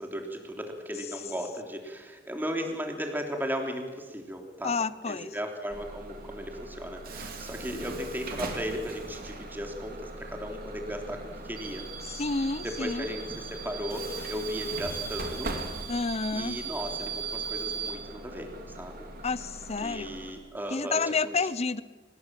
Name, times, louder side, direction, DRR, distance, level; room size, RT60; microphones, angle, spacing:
voice 1, 0.0-4.7 5.1-11.9 12.6-15.6 16.3-19.1 19.8-21.3, equal, 10° right, 3 dB, 3.3 m, -36 dB
voice 2, 4.6-5.4 12.0-13.1 15.9-16.6 19.2-20.2 20.7-21.8, left 4 dB, 35° left, 17 dB, 0.7 m, -30 dB
Bus / Alarm, 5.7-20.3, right 4 dB, 50° right, 3.0 m, -38 dB
25.5 x 20.5 x 7.6 m, 1.4 s
head